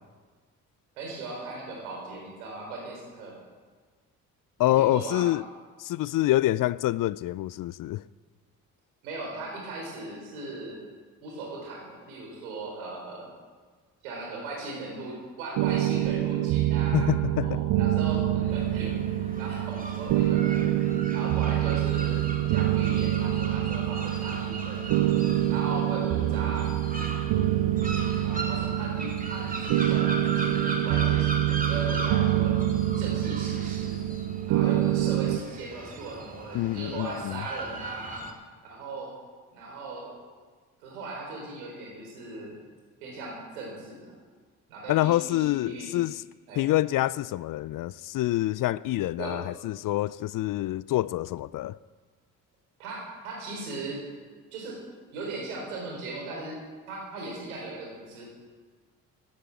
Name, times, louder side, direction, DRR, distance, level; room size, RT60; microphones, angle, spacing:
voice 1, 1.0-3.4 4.8-5.3 9.0-10.8 11.2-13.3 14.0-17.1 17.4-18.9 19.2-22.2 22.5-25.1 25.5-26.7 28.2-32.6 33.0-34.0 34.4-38.2 38.7-39.1 39.5-40.1 40.8-42.5 43.0-44.1 44.7-45.9 46.5-46.7 49.2-49.3 52.8-54.0 54.5-54.8 55.1-56.6 56.9-58.2, right 3 dB, 85° right, 4.2 m, -38 dB
voice 2, 4.6-5.4 5.8-8.0 16.9-17.6 36.5-37.4 44.9-46.2 46.6-51.8, left 15 dB, 50° left, 0.5 m, -26 dB
sound 1, 15.6-35.4, right 13 dB, 65° right, 0.8 m, -26 dB
sound 2, 18.5-38.3, right 2 dB, 20° right, 2.4 m, -38 dB
12.5 x 11.5 x 7.6 m
hypercardioid pair, 45°, 42 cm